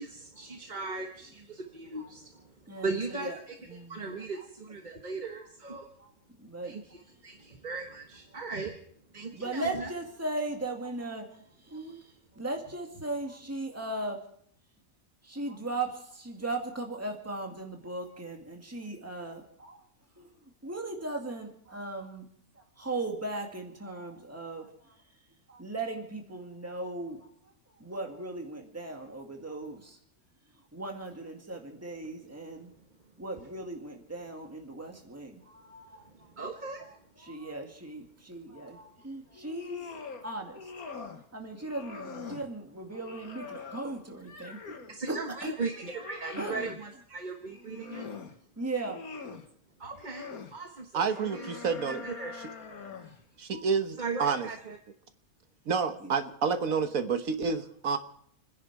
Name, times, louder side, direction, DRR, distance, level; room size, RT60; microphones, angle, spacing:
voice 1, 0.0-3.5 3.9-5.9 6.6-8.7 9.1-9.9 36.2-36.9 44.9-48.1 49.8-51.5 51.9-52.3 54.0-54.8, right 4 dB, 35° right, 3 dB, 1.3 m, -38 dB
voice 2, 2.7-3.4 3.7-4.1 4.3-4.4 6.0-6.1 6.4-7.0 9.3-14.2 15.2-19.8 20.2-20.3 20.6-22.3 22.5-25.0 25.5-27.3 27.8-30.0 30.7-32.7 33.2-36.3 37.2-45.6 46.4-46.6 48.6-49.0 53.5-53.6 56.0-56.1, right 2 dB, 10° right, 2 dB, 2.1 m, -38 dB
sound 1, 39.3-40.2 40.5-41.2 41.6-42.5 42.9-45.0 45.4-46.8 47.5-48.3 48.7-49.5 49.9-50.5 51.0-53.2, left 5 dB, 80° left, 2.0 m, -44 dB
voice 3, 50.9-52.1 53.4-54.5 55.7-58.0, right 5 dB, 70° right, 8 dB, 1.6 m, -29 dB
29.5 x 10.5 x 4.7 m, 0.64 s
omnidirectional pair, 1.5 m